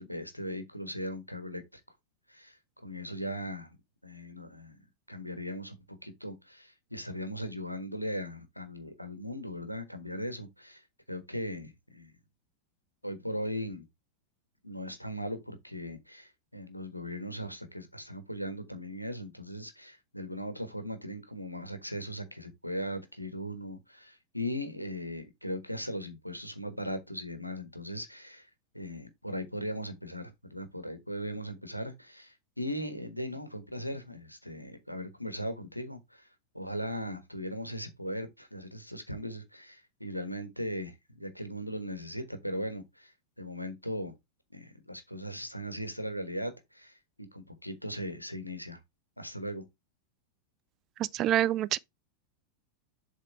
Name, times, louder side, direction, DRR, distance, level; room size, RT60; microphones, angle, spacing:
voice 1, 0.0-1.8 2.3-3.8 4.0-4.8 5.1-5.8 6.0-12.1 13.0-13.9 14.6-36.3 36.5-44.1 44.5-48.8 49.2-49.6, equal, 90° left, 1.3 m, -38 dB
voice 2, 51.0-51.8, right 12 dB, 35° right, 0.4 m, -26 dB
7.3 x 3.6 x 4.5 m
figure-of-eight pair, 90°, 0 cm